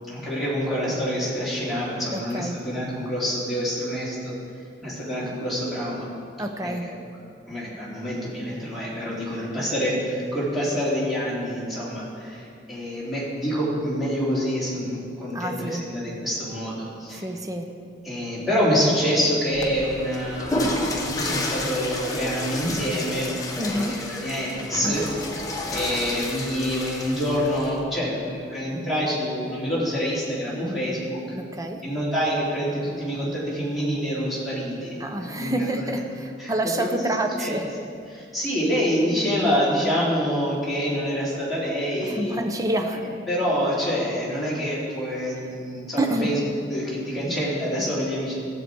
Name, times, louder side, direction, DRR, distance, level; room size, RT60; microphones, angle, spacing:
voice 1, 0.1-4.3 4.8-6.1 6.6-6.9 7.5-17.3 18.0-25.0 25.7-31.2 31.8-35.8 36.4-36.5 36.8-37.1 37.4-37.6 38.1-42.4 42.9-43.0 43.3-46.4 46.7-48.4, equal, ahead, -9 dB, 3.2 m, -26 dB
voice 2, 2.1-2.7 6.4-6.9 15.3-15.9 17.1-17.7 23.6-24.1 24.8-25.0 31.4-31.8 35.0-37.7 42.0-43.1 46.0-46.4, right 1 dB, 20° right, 5 dB, 0.7 m, -28 dB
Water / Toilet flush, 19.5-27.8, left 1 dB, 20° left, 1.0 m, -31 dB
15.0 x 7.7 x 4.6 m, 2.4 s
head